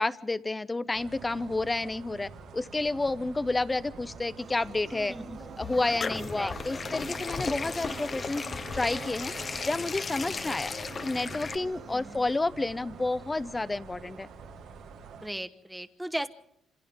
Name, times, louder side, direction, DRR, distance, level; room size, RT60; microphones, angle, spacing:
voice 1, 0.0-5.1 5.6-8.4 8.7-10.7 11.0-14.3, left 2 dB, 20° left, 15 dB, 0.8 m, -30 dB
sound 1, 0.9-15.3, right 5 dB, 85° right, 1.9 m, -47 dB
sound 2, 4.4-12.4, right 4 dB, 50° right, 2.6 m, -47 dB
voice 2, 5.1-5.6 6.1-6.8 10.3-10.9 11.9-12.3 15.1-16.3, right 1 dB, 5° right, 11 dB, 1.2 m, -39 dB
sound 3, 5.3-11.6, left 5 dB, 40° left, 1.0 m, -36 dB
27.5 x 26.0 x 3.7 m, 0.78 s
cardioid pair, 90°, 0 cm